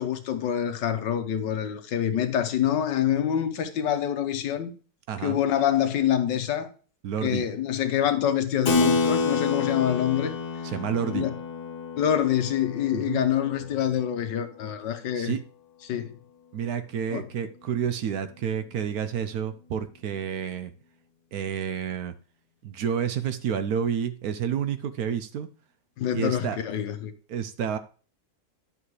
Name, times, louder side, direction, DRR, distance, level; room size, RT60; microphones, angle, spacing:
voice 1, 0.0-4.7 5.2-6.7 7.2-10.3 11.1-11.3 12.0-15.3 15.8-16.2 17.1-17.2 26.0-27.1, left 10 dB, 80° left, 1.5 m, -26 dB
voice 2, 5.1-5.4 7.0-7.4 10.7-11.3 12.9-13.2 15.1-15.4 16.5-20.7 21.3-22.1 22.6-25.5 26.1-26.6 27.3-27.8, right 8 dB, 65° right, 1.0 m, -29 dB
Keyboard (musical), 8.7-14.7, left 4 dB, 60° left, 1.5 m, -29 dB
11.0 x 5.9 x 3.2 m
omnidirectional pair, 1.9 m